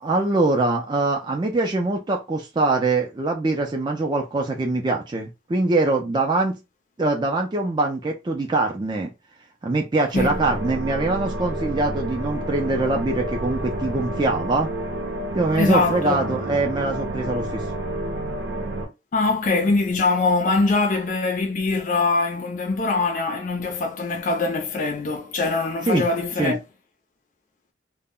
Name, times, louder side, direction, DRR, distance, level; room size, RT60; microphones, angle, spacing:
voice 1, 0.0-6.5 7.0-9.1 9.6-14.7 15.3-17.6 25.9-26.0 26.4-26.5, right 2 dB, 25° right, 0.4 m, -23 dB
sound 1, 10.1-18.9, right 1 dB, 85° right, 0.7 m, -29 dB
voice 2, 15.6-16.4 19.1-26.6, left 3 dB, 45° left, 0.4 m, -23 dB
2.1 x 2.1 x 3.6 m
head